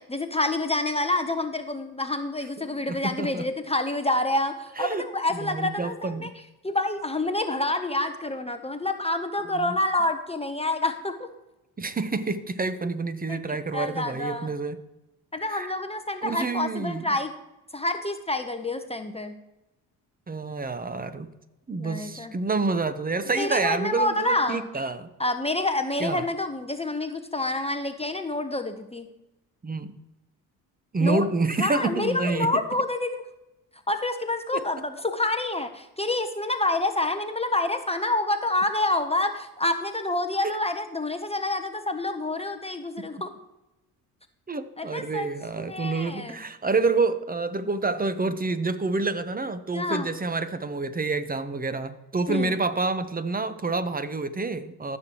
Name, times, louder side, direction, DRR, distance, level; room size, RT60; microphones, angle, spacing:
voice 1, 0.0-6.3 6.6-11.3 13.3-14.5 15.3-17.3 17.7-19.3 21.8-22.4 23.4-24.7 25.2-29.1 31.0-31.2 31.6-33.2 33.9-43.3 44.8-45.3 45.6-46.4 49.7-50.1 52.3-52.5, left 2 dB, 15° left, 7 dB, 0.8 m, -28 dB
voice 2, 2.6-3.4 4.8-5.0 5.4-6.3 9.5-9.8 11.8-14.8 15.5-15.7 16.2-17.1 20.3-21.3 21.7-25.1 26.0-26.3 29.6-29.9 30.9-32.6 34.5-34.6 40.4-40.5 44.5-55.0, right 3 dB, 20° right, 12 dB, 0.9 m, -28 dB
14.5 x 6.4 x 2.9 m, 0.96 s
hypercardioid pair, 55°, 43 cm